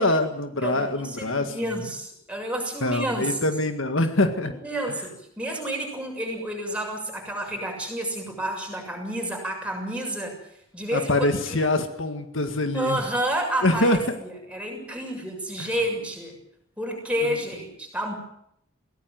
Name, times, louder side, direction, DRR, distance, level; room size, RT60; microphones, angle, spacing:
voice 1, 0.0-1.8 2.8-4.5 10.9-13.0 13.6-14.0 15.6-15.7, left 2 dB, 65° left, 7 dB, 1.9 m, -24 dB
voice 2, 0.6-3.5 4.4-10.4 10.7-11.6 12.7-16.4 16.8-18.1, right 1 dB, 5° right, 1 dB, 7.0 m, -30 dB
23.0 x 17.5 x 9.4 m, 0.75 s
head